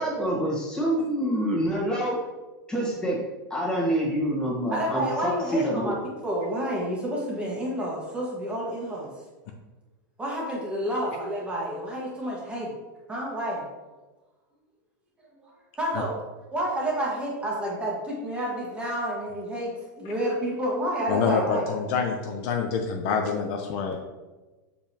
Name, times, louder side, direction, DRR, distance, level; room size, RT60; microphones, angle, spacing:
voice 1, 0.0-2.2 2.7-3.2 3.5-6.0, right 1 dB, 5° left, -4 dB, 1.6 m, -26 dB
voice 2, 4.7-6.0 6.2-9.1 10.2-12.7 13.1-13.6 15.8-16.2 16.5-21.7, right 1 dB, 10° right, -4 dB, 1.6 m, -29 dB
voice 3, 21.1-24.0, left 5 dB, 45° left, 2 dB, 0.7 m, -26 dB
6.8 x 5.1 x 2.9 m, 1.2 s
supercardioid pair, 150°, 11 cm